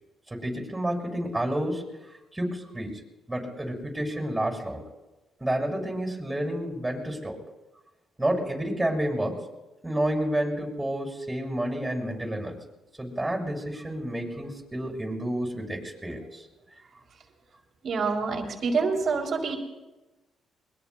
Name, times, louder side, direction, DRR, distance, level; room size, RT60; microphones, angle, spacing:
voice 1, 0.3-1.9 2.3-3.0 3.3-4.8 5.4-7.4 8.2-9.4 9.8-12.5 13.0-16.5, right 1 dB, 10° right, 0 dB, 6.8 m, -30 dB
voice 2, 17.8-19.6, right 4 dB, 55° right, 2 dB, 3.1 m, -26 dB
22.0 x 22.0 x 2.3 m, 1.1 s
supercardioid pair, 65°, 0 cm